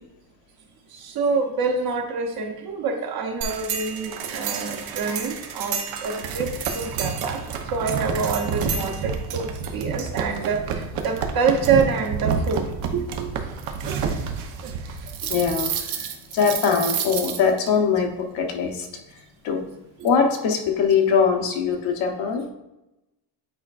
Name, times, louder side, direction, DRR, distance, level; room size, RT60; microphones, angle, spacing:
voice 1, 0.9-7.4 7.7-13.3, right 5 dB, 50° right, 3 dB, 0.9 m, -26 dB
sound 1, 3.4-17.7, right 6 dB, 80° right, 0.9 m, -29 dB
voice 2, 15.3-18.9 19.4-19.6 20.0-22.5, left 6 dB, 70° left, 3 dB, 1.1 m, -22 dB
8.7 x 4.4 x 2.5 m, 0.95 s
cardioid pair, 135°, 47 cm